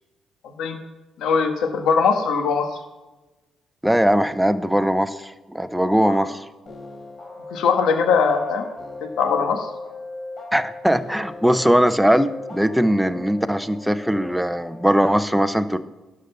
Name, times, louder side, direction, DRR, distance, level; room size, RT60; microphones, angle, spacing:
voice 1, 1.2-2.7 6.1-6.2 7.5-8.6 9.0-9.7, left 5 dB, 80° left, 6 dB, 1.4 m, -20 dB
voice 2, 3.8-6.4 10.5-15.8, equal, ahead, 11 dB, 0.7 m, -20 dB
sound 1, 6.7-15.2, left 2 dB, 40° left, 3.6 m, -38 dB
11.5 x 6.7 x 6.8 m, 1.2 s
cardioid pair, 90°, 0 cm